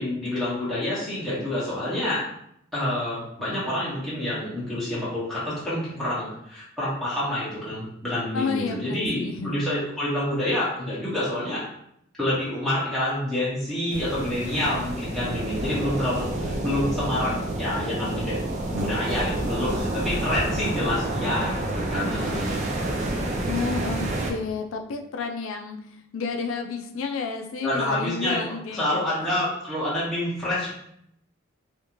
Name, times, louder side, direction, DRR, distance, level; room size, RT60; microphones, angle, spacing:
voice 1, 0.0-2.3 2.7-11.6 12.2-18.4 18.7-22.6 27.6-30.7, left 1 dB, ahead, -11 dB, 0.8 m, -28 dB
voice 2, 8.3-9.6 23.5-25.8 26.1-29.0, left 5 dB, 85° left, 4 dB, 0.4 m, -31 dB
sound 1, 13.9-24.3, right 1 dB, 35° right, 0.4 m, -29 dB
2.5 x 2.5 x 2.9 m, 0.73 s
head